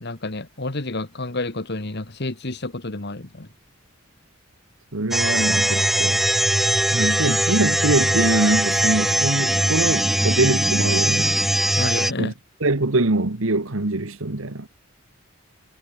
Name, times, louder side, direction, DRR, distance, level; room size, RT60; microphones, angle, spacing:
voice 1, 0.0-3.5 11.8-12.3, left 2 dB, 55° left, 1.9 m, -29 dB
voice 2, 4.9-6.2 6.9-11.4 12.2-12.3 12.6-14.7, right 2 dB, 80° right, 1.6 m, -23 dB
sound 1, 5.1-12.1, equal, ahead, 0.7 m, -21 dB
head